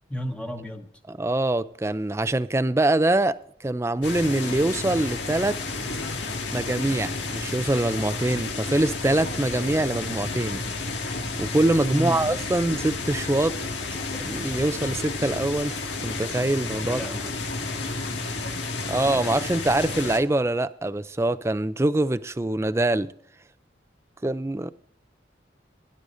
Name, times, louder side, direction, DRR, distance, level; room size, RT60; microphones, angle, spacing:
voice 1, 0.1-0.9 11.9-12.3 16.8-17.4, equal, 5° left, 1.1 m, -32 dB
voice 2, 1.1-5.6 6.5-10.6 11.0-13.6 14.2-17.0 18.9-23.1 24.2-24.7, right 2 dB, 15° right, 0.4 m, -24 dB
sound 1, 4.0-20.2, left 3 dB, 90° left, 2.0 m, -31 dB
21.5 x 11.5 x 2.6 m
head